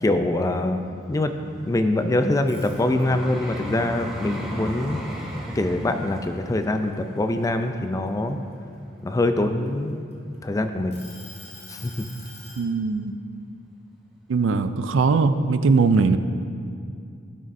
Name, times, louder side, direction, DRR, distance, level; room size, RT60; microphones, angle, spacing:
voice 1, 0.0-5.0 5.6-8.4 9.0-10.0 10.4-11.0 11.7-12.0, left 1 dB, 15° left, 7 dB, 0.3 m, -24 dB
Vehicle, 0.6-9.7 10.3-10.5, equal, 5° right, 0.9 m, -37 dB
sound 1, 2.4-3.3 3.8-5.6 6.0-6.3 6.7-8.5 9.2-10.4 10.9-12.7, left 2 dB, 35° left, 1.4 m, -46 dB
voice 2, 12.6-13.1 14.3-16.2, right 4 dB, 75° right, 10 dB, 0.4 m, -20 dB
12.5 x 6.5 x 2.6 m, 2.4 s
head